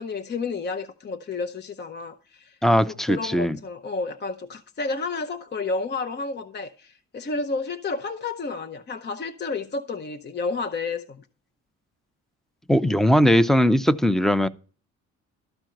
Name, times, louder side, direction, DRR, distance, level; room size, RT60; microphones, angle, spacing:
voice 1, 0.0-2.6 2.9-11.2, left 3 dB, 35° left, 0.7 m, -31 dB
voice 2, 2.6-3.6 12.7-14.5, equal, ahead, 0.6 m, -19 dB
13.0 x 4.4 x 7.7 m
cardioid pair, 90°, 30 cm